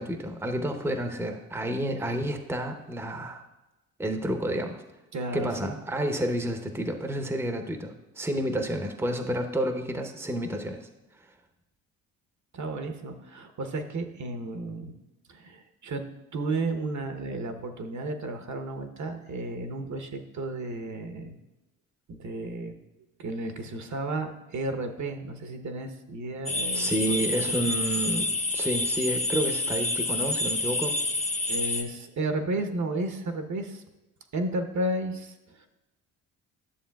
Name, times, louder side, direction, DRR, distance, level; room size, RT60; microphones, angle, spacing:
voice 1, 0.0-3.4 4.0-4.8 5.3-10.9 26.7-31.0, right 1 dB, 5° right, 5 dB, 0.8 m, -30 dB
voice 2, 5.1-5.8 12.5-14.9 15.3-16.0 16.3-21.3 22.1-22.7 23.2-27.8 31.5-33.8 34.3-35.7, right 2 dB, 45° right, 7 dB, 1.0 m, -33 dB
sound 1, 26.5-31.8, left 2 dB, 20° left, 1.0 m, -28 dB
11.5 x 6.9 x 2.3 m, 1.0 s
supercardioid pair, 55°, 39 cm